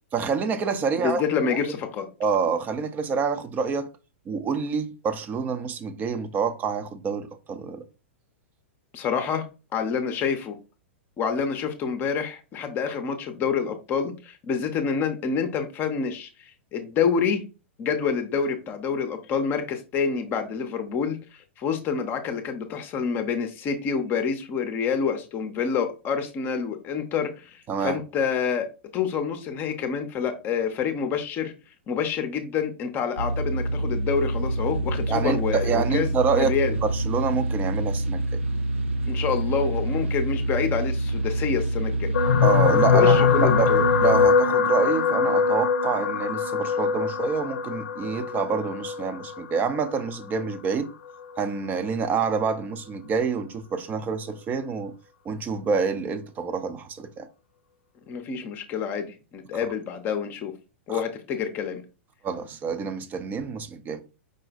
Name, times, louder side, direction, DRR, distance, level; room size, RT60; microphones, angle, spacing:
voice 1, 0.1-1.2 2.2-3.9 4.3-7.8 27.7-27.9 35.1-36.5 36.8-38.4 42.4-43.7 44.0-50.9 51.4-54.9 55.3-57.3 60.9-61.0 62.2-64.0, right 5 dB, 25° right, 0.6 m, -27 dB
voice 2, 1.0-2.1 8.9-9.5 9.7-10.6 11.2-17.4 17.8-28.7 28.9-31.5 31.9-36.8 39.1-42.1 42.9-43.9 58.1-60.5 60.9-61.8, left 6 dB, 30° left, 0.7 m, -27 dB
sound 1, 33.2-44.3, right 1 dB, 70° right, 0.8 m, -27 dB
sound 2, 42.1-50.6 51.4-51.6 51.9-52.0, left 6 dB, 75° left, 0.6 m, -22 dB
5.0 x 2.1 x 4.1 m
hypercardioid pair, 110°, 7 cm